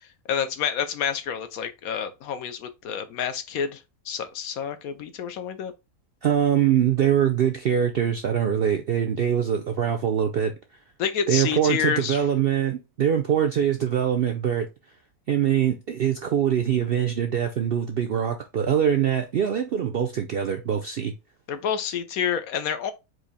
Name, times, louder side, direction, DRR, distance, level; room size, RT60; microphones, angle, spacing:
voice 1, 0.3-5.7 11.0-12.2 21.5-22.9, left 8 dB, 75° left, 1.2 m, -28 dB
voice 2, 6.2-10.5 11.3-14.7 15.3-21.1, right 9 dB, 65° right, 0.5 m, -23 dB
4.6 x 2.7 x 4.1 m
omnidirectional pair, 1.5 m